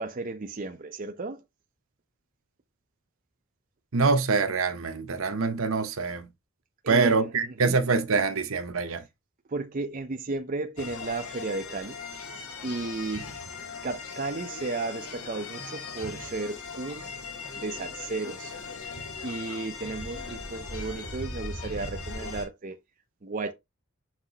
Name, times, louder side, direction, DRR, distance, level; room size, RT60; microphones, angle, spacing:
voice 1, 0.0-1.4 6.8-7.8 9.5-12.0 12.6-13.3 13.8-17.1 17.5-18.6 19.2-22.8 23.2-23.5, right 3 dB, 40° right, 0.5 m, -34 dB
voice 2, 3.9-6.3 6.9-9.0, right 4 dB, 70° right, 0.8 m, -25 dB
sound 1, 10.8-22.5, left 4 dB, 90° left, 2.1 m, -39 dB
5.9 x 5.5 x 2.9 m
head